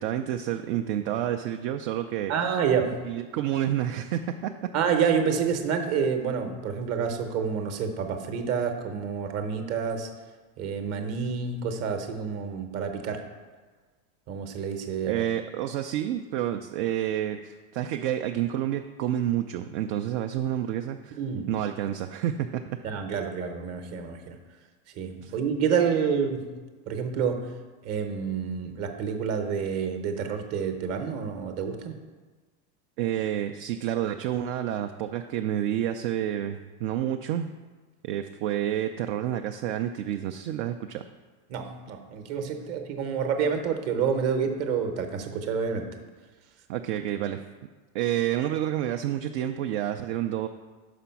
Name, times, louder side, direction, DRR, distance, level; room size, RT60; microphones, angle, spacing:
voice 1, 0.0-2.3 3.0-4.5 15.0-21.2 21.5-22.8 25.2-25.3 33.0-37.5 38.0-41.0 46.7-47.4 47.9-50.5, right 11 dB, 55° right, 6 dB, 0.4 m, -29 dB
voice 2, 2.3-3.0 4.7-10.1 10.6-13.2 14.3-15.2 21.2-21.5 22.8-24.4 25.0-26.5 26.9-27.5 27.8-31.9 41.5-45.9, right 6 dB, 35° right, 6 dB, 0.9 m, -28 dB
6.0 x 5.1 x 5.7 m, 1.3 s
supercardioid pair, 135°, 44 cm